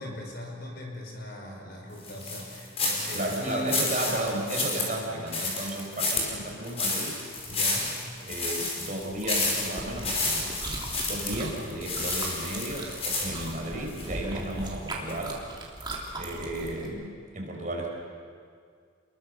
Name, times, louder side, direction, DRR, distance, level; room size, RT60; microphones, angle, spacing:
voice 1, 0.0-3.9 7.5-8.0, left 1 dB, 55° left, 1 dB, 5.4 m, -39 dB
sound 1, 2.0-14.1 14.6-14.7 15.1-15.2, left 3 dB, 30° left, 5.3 m, -30 dB
voice 2, 3.1-7.2 8.2-15.4 16.1-17.9, right 1 dB, 40° right, 0 dB, 5.1 m, -34 dB
Chewing mastication, 9.0-16.9, right 2 dB, 25° right, 3.4 m, -39 dB
28.0 x 22.0 x 6.8 m, 2.1 s
head